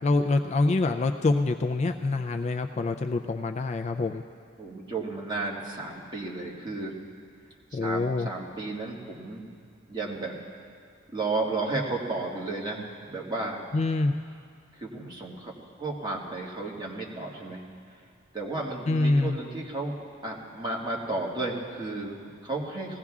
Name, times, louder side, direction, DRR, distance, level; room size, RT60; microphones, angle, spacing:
voice 1, 0.0-4.2 7.7-8.3 13.7-14.2 18.9-19.4, left 2 dB, 35° left, 6 dB, 0.3 m, -25 dB
voice 2, 4.6-6.9 7.8-9.5 9.9-10.4 11.1-12.8 13.1-13.7 14.8-15.5 15.8-17.6 18.3-19.9 20.2-23.0, right 2 dB, 25° right, -3 dB, 1.7 m, -33 dB
20.0 x 16.0 x 2.4 m, 2.2 s
head